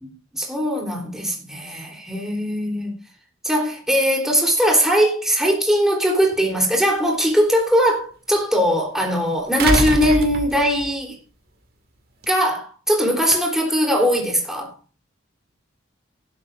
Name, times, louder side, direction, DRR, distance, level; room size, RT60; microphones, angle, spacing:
voice 1, 0.3-2.9 3.4-11.2 12.3-14.7, equal, ahead, 3.6 m, -20 dB
sound 1, 6.3-6.4 9.6-10.9 12.2-12.3, right 2 dB, 50° right, 2.2 m, -23 dB
17.0 x 12.0 x 2.6 m
head